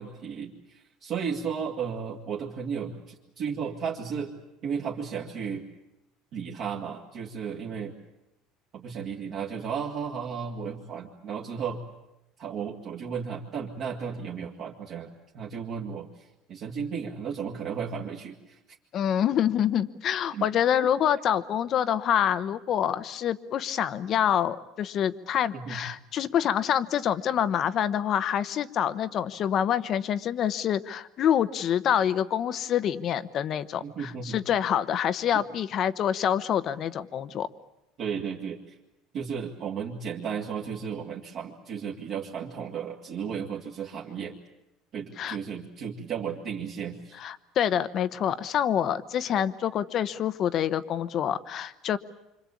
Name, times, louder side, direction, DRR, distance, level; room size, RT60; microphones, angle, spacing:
voice 1, 0.0-4.4 4.6-5.6 6.3-7.9 8.7-11.8 12.4-16.1 16.5-18.6 20.3-20.5 25.5-25.8 33.8-34.4 38.0-38.8 39.1-44.4 44.9-47.2, right 6 dB, 40° right, -2 dB, 2.2 m, -34 dB
voice 2, 18.9-37.5 45.2-45.4 47.2-52.0, left 9 dB, 35° left, 14 dB, 0.9 m, -26 dB
27.0 x 25.5 x 8.5 m, 0.91 s
cardioid pair, 180°, 0 cm